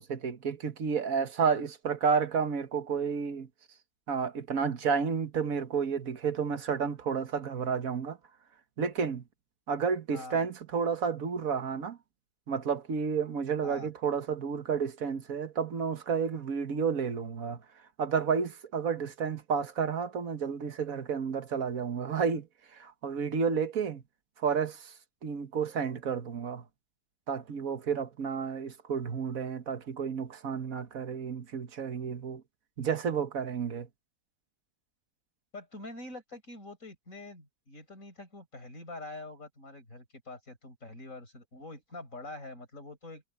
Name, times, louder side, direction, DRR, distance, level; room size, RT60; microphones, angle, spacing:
voice 1, 0.0-3.5 4.1-8.2 8.8-9.2 9.7-12.0 12.5-17.6 18.0-22.5 22.7-24.0 24.4-24.9 25.2-26.6 27.3-32.4 32.8-33.9, right 6 dB, 85° right, 1.7 m, -31 dB
voice 2, 10.1-10.5 13.6-13.9 35.5-43.2, left 2 dB, 70° left, 6.9 m, -45 dB
omnidirectional pair, 1.4 m